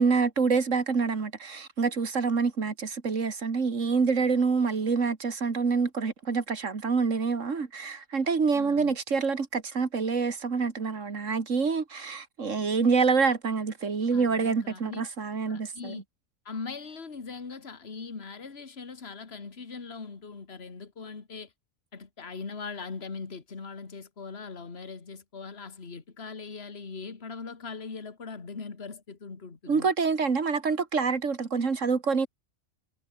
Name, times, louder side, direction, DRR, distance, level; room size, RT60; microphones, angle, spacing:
voice 1, 0.0-16.0 29.7-32.3, right 5 dB, 65° right, 2.4 m, -26 dB
voice 2, 8.5-8.9 14.1-15.0 15.5-16.0 16.5-21.5 21.9-29.9, left 4 dB, 50° left, 2.3 m, -40 dB
omnidirectional pair, 1.4 m